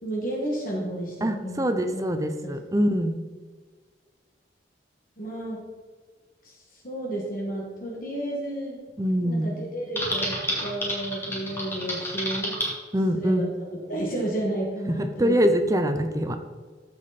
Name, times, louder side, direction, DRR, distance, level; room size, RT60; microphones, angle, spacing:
voice 1, 0.0-2.1 2.4-2.9 5.2-5.6 6.4-8.8 9.2-10.3 10.6-12.6 13.1-13.5 13.9-15.4, right 1 dB, 50° left, -3 dB, 1.7 m, -32 dB
voice 2, 1.2-3.2 9.0-9.5 12.9-13.5 14.9-16.4, equal, 20° right, 8 dB, 0.6 m, -24 dB
Typing, 10.0-12.7, equal, 15° left, 2.3 m, -29 dB
14.0 x 5.2 x 4.2 m, 1.5 s
head